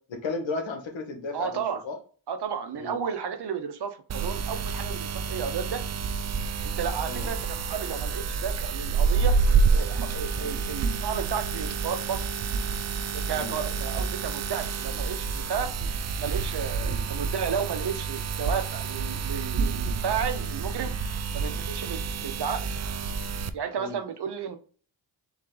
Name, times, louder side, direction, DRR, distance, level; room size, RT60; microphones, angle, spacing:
voice 1, 0.1-2.0 2.7-3.0 7.1-7.3 10.4-10.6 13.3-13.6 16.8-17.0 21.4-21.6 22.0-22.1 23.8-24.0, left 3 dB, 70° left, 4 dB, 1.3 m, -35 dB
voice 2, 1.3-1.8 2.3-5.8 6.6-9.3 9.7-12.2 13.1-15.7 16.2-20.9 21.3-22.7 23.5-24.6, right 7 dB, 60° right, 8 dB, 0.9 m, -33 dB
sound 1, 4.1-23.5, right 5 dB, 35° right, 0.4 m, -28 dB
3.9 x 3.1 x 3.8 m, 0.42 s
cardioid pair, 65°, 47 cm